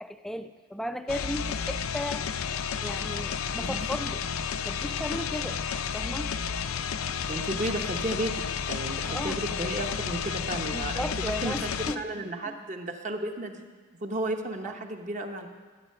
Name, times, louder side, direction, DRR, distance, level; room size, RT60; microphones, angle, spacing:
voice 1, 0.0-2.4 2.8-4.2 4.6-5.6 5.9-6.3 9.0-9.4 10.7-12.6 14.6-14.7, left 1 dB, ahead, 9 dB, 0.3 m, -36 dB
sound 1, 1.1-12.0, left 7 dB, 75° left, 0.5 m, -32 dB
voice 2, 7.3-8.3 8.6-11.7 12.0-13.7 14.0-15.5, right 1 dB, 35° right, 4 dB, 1.0 m, -33 dB
12.5 x 9.7 x 6.6 m, 1.4 s
head